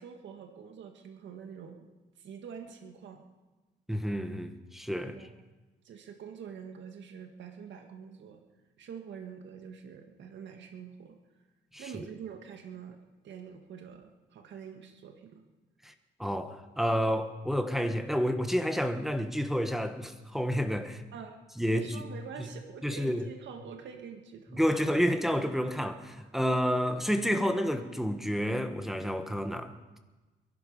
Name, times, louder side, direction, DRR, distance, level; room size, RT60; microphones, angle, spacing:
voice 1, 0.0-1.9 2.2-3.2 5.0-5.3 5.8-8.4 8.8-11.2 11.8-13.0 13.2-15.4 21.1-24.6, right 7 dB, 70° right, 1.8 m, -45 dB
voice 2, 3.9-5.3 11.7-11.8 15.8-15.9 16.2-21.0 21.6-22.0 22.4-22.5 22.8-23.3 24.5-29.7, equal, ahead, 1.3 m, -30 dB
22.5 x 12.0 x 5.4 m
cardioid pair, 90°, 20 cm